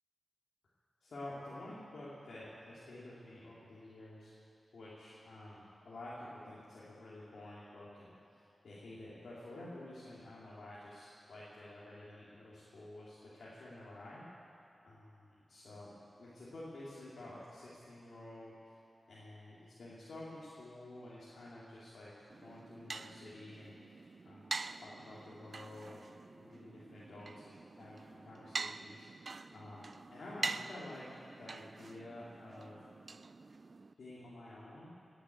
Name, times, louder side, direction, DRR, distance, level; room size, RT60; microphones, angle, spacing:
voice 1, 1.0-4.3 4.7-14.2 14.8-15.9 16.2-18.7 19.1-22.1 22.4-23.7 24.2-29.2 29.5-31.0 31.4-32.8 34.0-34.9, left 1 dB, 80° left, -8 dB, 2.8 m, -50 dB
sound 1, 22.3-33.9, right 3 dB, 50° right, 0.4 m, -45 dB
19.0 x 8.2 x 8.5 m, 2.7 s
wide cardioid pair, 85°, 0 cm